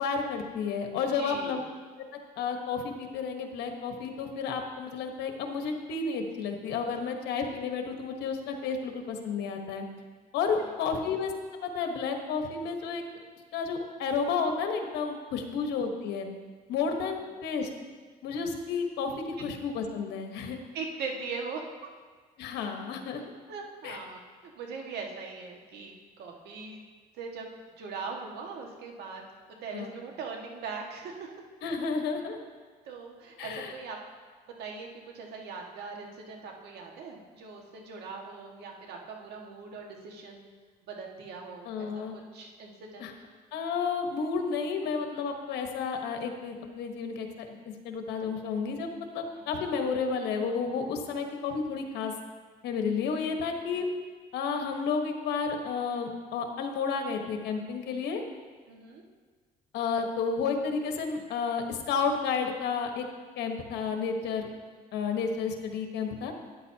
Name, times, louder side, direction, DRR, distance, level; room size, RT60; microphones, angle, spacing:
voice 1, 0.0-1.6 2.4-9.8 10.3-11.3 11.6-13.0 13.5-16.3 16.7-17.7 18.2-20.6 22.4-23.2 23.8-24.0 29.7-29.9 31.6-32.4 33.4-33.7 41.6-42.2 43.0-43.1 43.5-47.5 47.8-52.1 52.6-53.8 54.3-58.2 59.7-63.0 63.4-64.5 64.9-66.3, left 5 dB, 80° left, 4 dB, 1.3 m, -31 dB
voice 2, 1.2-1.6 10.9-11.1 20.7-21.6 23.5-26.8 27.2-27.5 27.8-31.3 32.9-34.0 34.6-40.5 40.8-43.1 49.4-49.6 53.7-53.8 58.7-59.0, right 4 dB, 75° right, 1 dB, 1.8 m, -41 dB
13.0 x 9.6 x 2.8 m, 1.5 s
cardioid pair, 110°, 17 cm